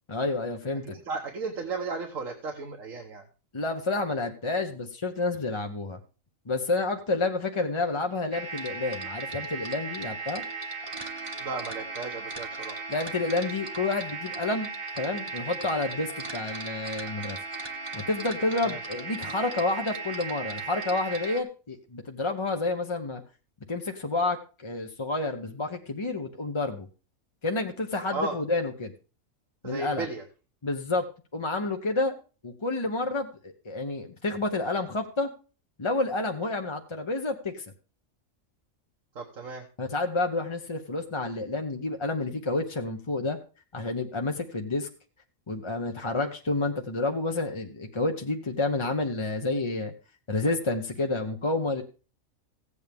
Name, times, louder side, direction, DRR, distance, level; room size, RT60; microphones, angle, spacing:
voice 1, 0.1-0.9 3.5-6.0 6.5-10.4 12.9-14.7 14.9-17.4 17.9-23.2 23.7-24.4 24.6-26.9 27.4-28.9 29.6-30.1 30.6-31.1 31.3-32.2 32.4-35.3 35.8-37.6 39.8-43.4 43.7-44.9 45.5-49.9 50.3-51.8, left 2 dB, 25° left, 3 dB, 0.8 m, -29 dB
voice 2, 0.8-3.2 11.4-12.9 18.6-18.8 28.1-28.4 29.6-30.2 39.1-39.6, right 4 dB, 70° right, 2 dB, 1.6 m, -35 dB
sound 1, 8.3-21.4, right 4 dB, 25° right, 1.1 m, -37 dB
15.5 x 8.2 x 3.5 m, 0.35 s
omnidirectional pair, 1.4 m